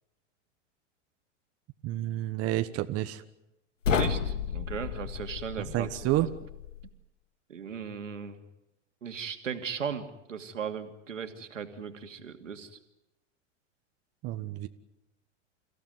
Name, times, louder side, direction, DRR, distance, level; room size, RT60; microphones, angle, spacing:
voice 1, 1.8-3.2 5.7-6.3 14.2-14.7, right 15 dB, 40° right, 9 dB, 1.4 m, -29 dB
sound 1, 3.8-6.9, left 7 dB, 85° left, 2.0 m, -32 dB
voice 2, 3.9-5.9 7.5-8.4 9.0-12.8, right 7 dB, 90° right, 7 dB, 2.6 m, -37 dB
29.5 x 16.0 x 9.4 m, 0.90 s
hypercardioid pair, 100°, 37 cm